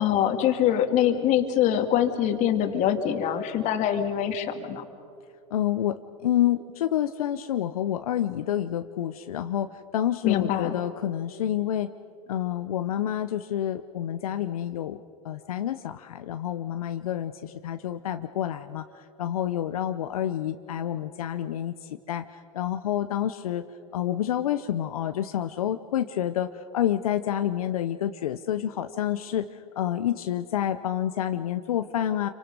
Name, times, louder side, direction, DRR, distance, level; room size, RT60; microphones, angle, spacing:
voice 1, 0.0-4.9 10.2-10.8, left 10 dB, 40° left, 7 dB, 2.2 m, -24 dB
voice 2, 5.5-11.9 12.3-22.2 22.5-23.7 23.9-32.3, left 11 dB, 80° left, 9 dB, 0.8 m, -28 dB
27.5 x 24.5 x 5.3 m, 2.6 s
hypercardioid pair, 115°, 18 cm